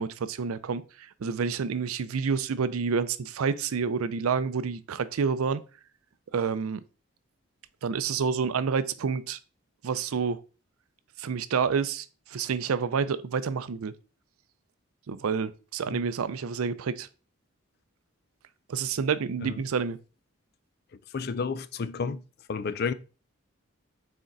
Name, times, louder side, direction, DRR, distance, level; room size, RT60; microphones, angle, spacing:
voice 1, 0.0-5.6 6.3-6.8 7.8-9.4 9.8-10.4 11.2-12.1 12.3-13.9 15.1-17.1 18.7-20.0, right 6 dB, 80° right, 0.4 m, -28 dB
voice 2, 21.1-22.2 22.5-22.9, left 5 dB, 45° left, 0.4 m, -31 dB
6.4 x 4.3 x 3.9 m
head